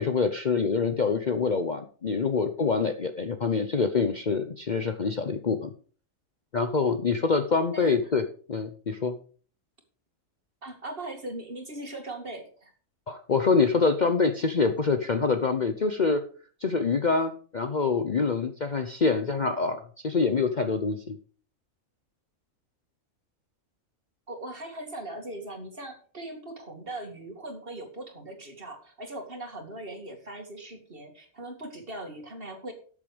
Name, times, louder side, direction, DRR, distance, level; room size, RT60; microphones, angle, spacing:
voice 1, 0.0-5.7 6.5-9.1 13.1-16.2 16.6-21.2, left 4 dB, 40° left, 7 dB, 0.8 m, -25 dB
voice 2, 7.7-8.1 10.6-12.7 24.3-32.7, right 1 dB, 40° right, 4 dB, 2.6 m, -40 dB
13.0 x 7.4 x 5.0 m, 0.42 s
omnidirectional pair, 1.5 m